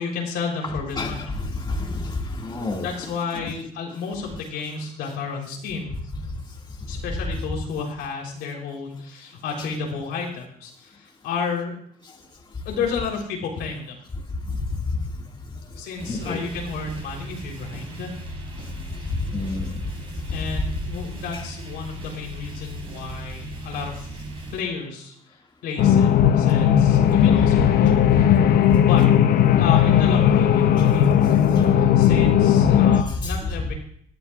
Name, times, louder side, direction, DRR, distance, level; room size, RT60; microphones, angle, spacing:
voice 1, 0.0-1.3 2.8-6.0 6.9-11.8 12.7-14.0 15.8-18.1 20.3-24.2 24.5-26.1 26.4-28.0 28.8-29.1 29.6-33.7, left 5 dB, 85° left, -1 dB, 3.6 m, -31 dB
voice 2, 1.0-2.1 2.4-2.9 3.3-3.5 16.1-16.4 19.3-19.7 21.3-21.4 33.2-33.4, left 2 dB, 25° left, -1 dB, 2.1 m, -29 dB
sound 1, 16.0-24.6, right 1 dB, 35° right, 3.8 m, -36 dB
sound 2, 25.8-33.0, left 9 dB, 65° left, 0.8 m, -17 dB
18.5 x 11.5 x 2.4 m, 0.64 s
cardioid pair, 110°, 17 cm